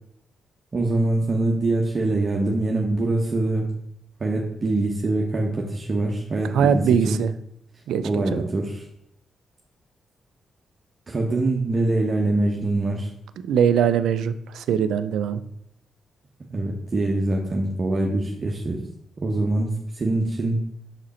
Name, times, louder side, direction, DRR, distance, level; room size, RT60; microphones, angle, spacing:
voice 1, 0.7-3.6 4.2-7.2 8.0-8.8 11.1-13.1 16.5-18.8 19.2-20.6, right 2 dB, 40° right, -1 dB, 0.9 m, -24 dB
voice 2, 6.5-7.3 7.9-8.5 13.4-15.4, right 7 dB, 85° right, 12 dB, 0.4 m, -21 dB
6.1 x 5.0 x 4.2 m, 0.73 s
cardioid pair, 70°, 0 cm